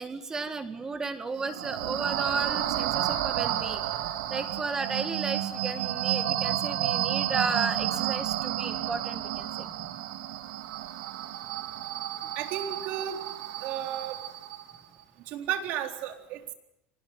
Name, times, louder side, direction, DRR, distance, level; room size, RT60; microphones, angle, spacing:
voice 1, 0.0-3.8 4.3-9.9 12.2-12.3, right 4 dB, 20° right, 9 dB, 2.0 m, -34 dB
sound 1, 1.3-14.8, right 12 dB, 90° right, 3.0 m, -31 dB
voice 2, 12.4-13.2 13.6-14.2 15.3-16.5, right 10 dB, 65° right, 5 dB, 3.9 m, -33 dB
26.0 x 19.5 x 9.8 m, 0.82 s
supercardioid pair, 120°, 3 cm